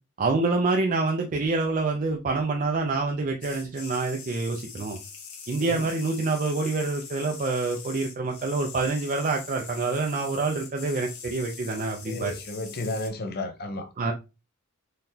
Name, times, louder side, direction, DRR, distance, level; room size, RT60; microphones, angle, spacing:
voice 1, 0.2-5.0 5.5-12.4 14.0-14.1, right 3 dB, 35° right, 0.4 m, -27 dB
sound 1, 3.4-13.1, left 6 dB, 75° left, 1.1 m, -43 dB
voice 2, 5.6-5.9 12.0-14.1, left 2 dB, 45° left, 0.7 m, -33 dB
3.9 x 3.1 x 2.7 m
head